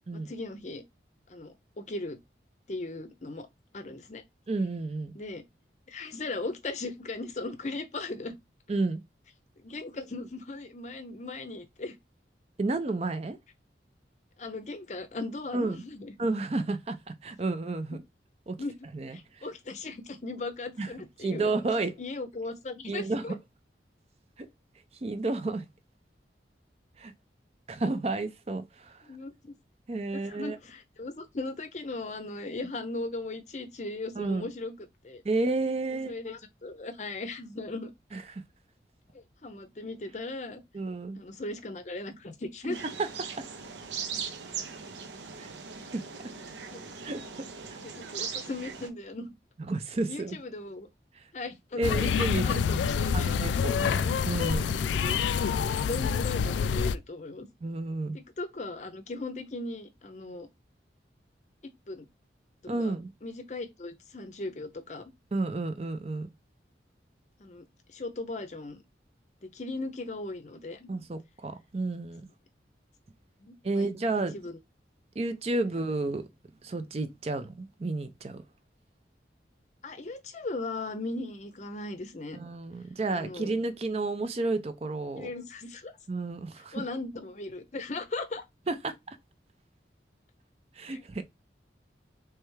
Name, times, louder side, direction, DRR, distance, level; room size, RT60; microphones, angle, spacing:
voice 1, 0.1-0.8 1.3-2.2 2.7-3.5 3.7-4.2 5.1-5.4 5.9-8.4 9.6-11.9 14.4-16.1 18.6-18.7 19.1-21.5 22.0-23.3 29.1-29.5 30.1-34.7 35.0-35.2 35.9-37.9 39.1-40.6 41.2-42.8 46.7-46.8 47.8-49.3 50.1-50.9 51.3-52.0 52.4-53.3 54.0-54.2 54.6-57.5 58.1-60.5 61.9-62.1 62.8-62.9 63.2-65.1 67.4-68.8 69.5-70.9 73.4-73.9 74.3-74.5 79.8-82.4 83.1-83.5 85.2-85.9 86.7-88.4 90.9-91.0, left 2 dB, 40° left, 0.6 m, -38 dB
voice 2, 4.5-5.1 8.7-9.0 12.6-13.4 15.5-15.8 16.2-18.0 18.5-18.6 18.9-19.5 20.8-20.9 21.2-21.9 22.9-23.4 24.4-24.5 25.0-25.7 27.0-27.1 27.7-29.0 29.9-30.6 34.2-34.5 35.2-36.1 38.1-38.4 40.7-41.2 42.7-43.1 45.4-45.5 45.9-46.0 47.0-47.2 47.7-47.8 49.7-50.4 51.1-51.2 51.8-52.6 53.1-54.8 57.6-58.2 62.7-63.1 65.3-66.3 70.9-72.3 73.6-74.3 75.2-76.3 76.6-78.4 82.3-85.3 86.1-86.8 88.7-89.2 90.8-91.2, right 2 dB, 35° right, 0.4 m, -31 dB
sound 1, 42.7-48.9, right 6 dB, 80° right, 0.7 m, -39 dB
sound 2, 51.8-57.0, left 6 dB, 85° left, 0.3 m, -27 dB
3.4 x 3.3 x 3.1 m
head